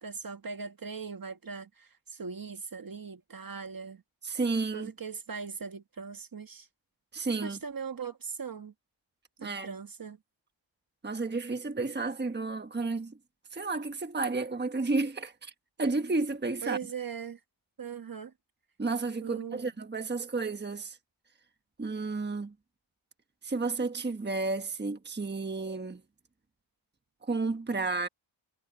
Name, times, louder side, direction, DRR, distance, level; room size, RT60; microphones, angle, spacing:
voice 1, 0.0-4.0 4.7-6.7 7.4-8.7 9.4-10.2 16.6-17.4 17.8-18.3 19.2-19.7, right 6 dB, 45° right, 1.5 m, -40 dB
voice 2, 4.2-4.9 7.1-7.6 9.4-9.7 11.0-13.1 13.5-15.5 15.8-16.8 18.8-21.0 21.8-22.5 23.4-26.0 27.2-28.1, right 3 dB, 20° right, 1.3 m, -32 dB
wide cardioid pair, 95°, 47 cm